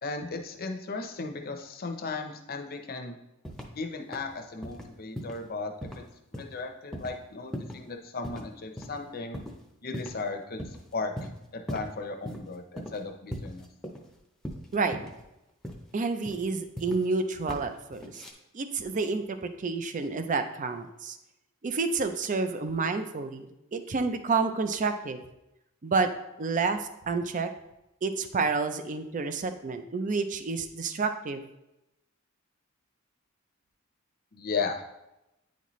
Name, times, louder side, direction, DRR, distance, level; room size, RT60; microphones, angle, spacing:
voice 1, 0.0-3.2 3.8-6.0 6.3-9.4 9.8-10.6 10.9-11.1 11.5-13.7 34.3-34.8, left 3 dB, 45° left, 5 dB, 0.7 m, -36 dB
sound 1, 3.4-3.8 4.1-4.3 4.6-4.9 5.2-5.5 5.8-6.0 6.3-6.6 6.9-7.2 7.5-7.9 8.2-8.5 8.8-8.9 9.3-9.6 9.9-10.3 10.6-10.8 11.2-11.9 12.3-12.4 12.8-13.0 13.3-14.2 14.4-15.2 15.6-15.9 16.2-17.1 17.5-17.7 17.9-18.3, equal, ahead, 0.7 m, -38 dB
voice 2, 15.9-18.2 18.5-21.2 21.6-25.2 25.8-26.1 26.4-27.5 28.0-31.4, right 4 dB, 40° right, 9 dB, 0.5 m, -29 dB
9.2 x 4.1 x 3.1 m, 0.90 s
head